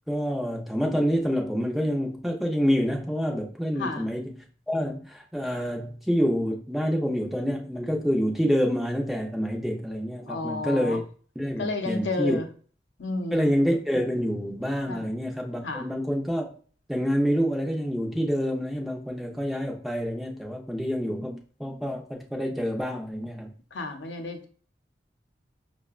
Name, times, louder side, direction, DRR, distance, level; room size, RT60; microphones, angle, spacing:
voice 1, 0.1-11.0 11.4-12.4 13.3-16.5 16.9-23.5, equal, ahead, 0.4 m, -27 dB
voice 2, 10.3-11.0 11.6-12.5 13.0-13.5 14.9-15.1 15.6-15.9 23.7-24.5, left 3 dB, 85° left, 0.6 m, -31 dB
5.6 x 2.1 x 2.3 m
head